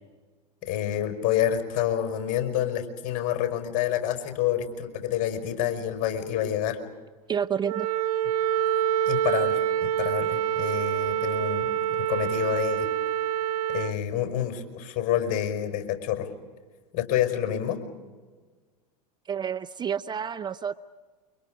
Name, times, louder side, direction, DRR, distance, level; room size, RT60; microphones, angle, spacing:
voice 1, 0.6-6.8 9.1-12.9 13.7-16.3 16.9-17.8, left 11 dB, 45° left, 6 dB, 5.0 m, -28 dB
voice 2, 7.3-7.9 19.3-20.7, right 7 dB, 20° right, 13 dB, 0.6 m, -29 dB
Wind instrument woodwind instrument, 7.6-13.9, right 10 dB, 75° right, 0.8 m, -26 dB
29.0 x 25.5 x 5.1 m, 1.4 s
hypercardioid pair, 100°, 20 cm